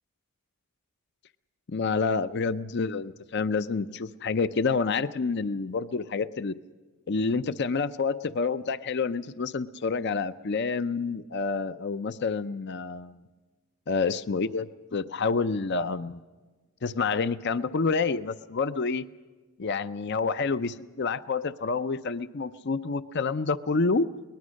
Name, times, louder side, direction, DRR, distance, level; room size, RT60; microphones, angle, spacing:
voice 1, 1.7-6.6 7.1-13.2 13.9-16.2 16.8-19.0 19.6-24.1, left 4 dB, 50° left, 13 dB, 0.5 m, -28 dB
23.0 x 20.0 x 6.4 m, 1.3 s
head